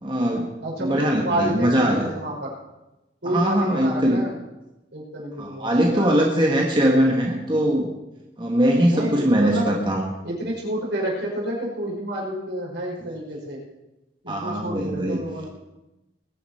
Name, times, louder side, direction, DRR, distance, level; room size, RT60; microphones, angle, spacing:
voice 1, 0.0-0.5 0.8-2.1 3.3-4.2 5.4-7.9 8.4-10.0 14.3-15.2, equal, 25° right, 0 dB, 1.5 m, -21 dB
voice 2, 0.6-2.5 3.2-4.4 4.9-6.5 8.9-9.7 10.2-13.6 14.2-15.5, right 1 dB, 80° right, -3 dB, 5.6 m, -29 dB
21.0 x 9.9 x 4.4 m, 0.99 s
head